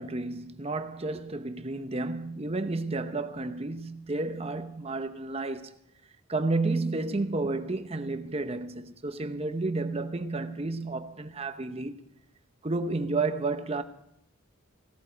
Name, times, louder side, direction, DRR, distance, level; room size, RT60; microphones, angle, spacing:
voice 1, 0.0-5.7 6.3-12.0 12.6-13.8, right 3 dB, 30° right, 0.8 m, -31 dB
17.0 x 13.0 x 5.1 m
head